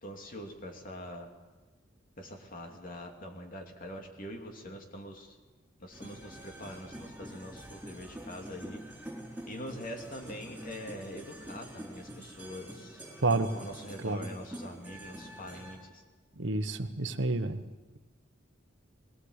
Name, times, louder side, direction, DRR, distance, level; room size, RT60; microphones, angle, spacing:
voice 1, 0.0-1.3 2.2-5.4 5.8-8.8 9.5-13.0 13.6-16.0, equal, 45° left, 2 dB, 2.8 m, -44 dB
sound 1, 5.9-15.8, right 1 dB, 5° right, 5.5 m, -46 dB
voice 2, 16.4-17.6, right 3 dB, 70° right, 9 dB, 1.2 m, -29 dB
21.0 x 18.0 x 8.2 m, 1.3 s
head